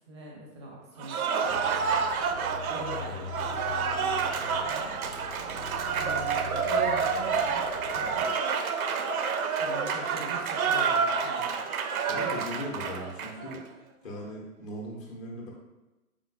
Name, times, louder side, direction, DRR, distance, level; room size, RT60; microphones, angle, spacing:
voice 1, 0.1-2.0 2.7-4.9 5.9-7.6 7.9-8.7 9.6-11.5, right 1 dB, 20° right, -2 dB, 0.5 m, -42 dB
Cheering / Applause, 1.0-13.6, right 6 dB, 70° right, 0.5 m, -29 dB
sound 1, 1.5-8.3, left 6 dB, 75° left, 0.6 m, -43 dB
voice 2, 12.1-13.6 14.0-15.5, left 1 dB, 25° left, -3 dB, 0.5 m, -38 dB
3.8 x 3.6 x 2.4 m, 1.1 s
hypercardioid pair, 130°, 45 cm